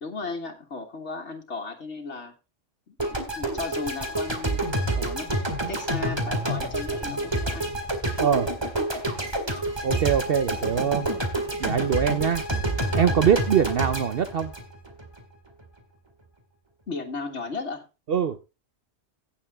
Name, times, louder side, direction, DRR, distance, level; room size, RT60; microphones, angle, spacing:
voice 1, 0.0-2.3 2.9-3.0 3.4-4.6 4.9-7.7 16.9-17.9, left 3 dB, 75° left, 1.9 m, -35 dB
sound 1, 3.0-15.2, right 1 dB, 20° right, 2.3 m, -28 dB
voice 2, 8.2-8.5 9.8-11.1 11.6-12.4 12.9-14.5 18.1-18.4, right 8 dB, 60° right, 0.9 m, -23 dB
16.5 x 7.2 x 3.5 m
omnidirectional pair, 1.2 m